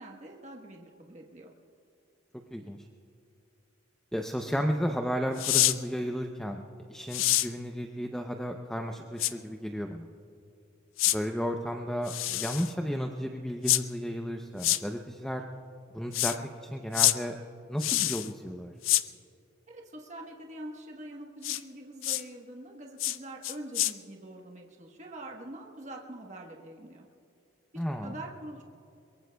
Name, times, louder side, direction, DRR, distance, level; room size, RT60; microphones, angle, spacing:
voice 1, 0.0-1.5 19.7-27.1 27.7-28.6, right 1 dB, 35° right, 0 dB, 1.2 m, -44 dB
voice 2, 4.1-6.6 6.9-10.1 11.1-15.4 15.9-16.3 16.6-17.3 17.7-18.7 27.8-28.2, equal, 5° left, 3 dB, 0.6 m, -33 dB
sound 1, 5.4-5.8 7.1-7.5 9.2-9.3 11.0-11.2 12.1-12.7 13.7-13.8 14.6-14.8 16.1-16.4 16.9-17.2 17.8-18.3 18.8-19.0 21.4-21.6 22.0-22.2 23.0-23.2 23.4-23.9, left 14 dB, 85° left, 0.5 m, -26 dB
23.0 x 22.5 x 2.3 m, 2.7 s
head